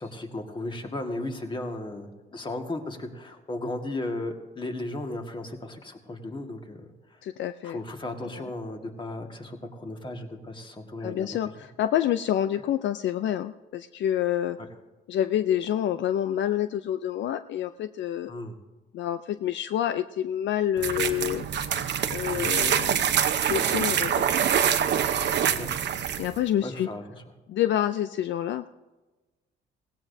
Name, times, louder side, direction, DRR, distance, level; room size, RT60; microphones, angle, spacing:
voice 1, 0.0-7.2 7.6-11.3 14.6-14.7 18.3-18.6 22.3-22.5 25.6-25.7 26.6-27.2, left 2 dB, 25° left, 4 dB, 1.7 m, -35 dB
voice 2, 7.2-7.8 8.4-8.5 11.0-14.6 15.1-18.3 18.9-21.5 22.1-24.6 26.2-26.9 27.5-28.7, left 11 dB, 70° left, 11 dB, 0.4 m, -28 dB
sound 1, 20.8-26.4, right 8 dB, 60° right, 0.8 m, -25 dB
17.5 x 17.0 x 2.7 m, 1.2 s
cardioid pair, 90°, 20 cm